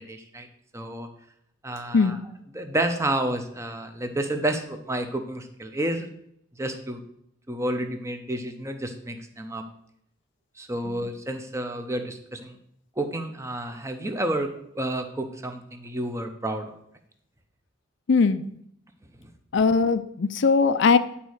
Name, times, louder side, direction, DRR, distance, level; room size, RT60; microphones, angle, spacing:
voice 1, 0.1-0.5 0.7-1.1 1.6-2.2 2.5-6.1 6.6-7.0 7.5-9.6 10.6-12.6 13.0-14.5 14.7-16.7, right 1 dB, 15° right, 6 dB, 0.8 m, -30 dB
voice 2, 18.1-18.5 19.5-21.0, left 4 dB, 55° left, 12 dB, 0.4 m, -20 dB
10.0 x 4.2 x 6.4 m, 0.71 s
head